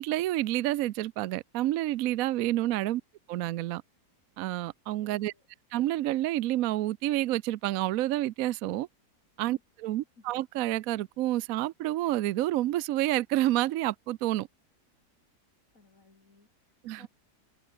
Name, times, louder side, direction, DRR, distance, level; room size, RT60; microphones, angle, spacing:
voice 1, 0.0-3.0 3.3-3.8 4.4-5.3 5.7-8.9 9.4-14.5 16.8-17.1, right 15 dB, 70° right, 0.9 m, -29 dB
voice 2, 4.9-5.4 9.5-9.6 10.2-10.3 15.7-17.1, left 3 dB, 55° left, 3.4 m, -59 dB
omnidirectional pair, 1.8 m